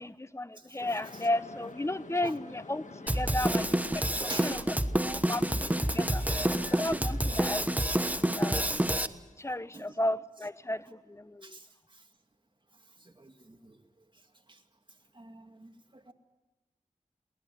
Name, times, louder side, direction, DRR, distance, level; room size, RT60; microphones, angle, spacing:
voice 1, 0.0-2.8 3.1-3.7 3.9-6.2 6.7-8.7 9.4-11.6, left 1 dB, 20° left, 15 dB, 0.9 m, -34 dB
sound 1, 0.8-8.7, left 3 dB, 65° left, 1.6 m, -48 dB
Drum kit, 3.1-9.1, right 1 dB, 10° right, 1.2 m, -28 dB
voice 2, 13.0-13.8 14.5-14.6 15.1-16.1, right 2 dB, 35° right, 5 dB, 2.3 m, -46 dB
23.0 x 19.0 x 8.0 m, 1.2 s
cardioid pair, 40°, 14 cm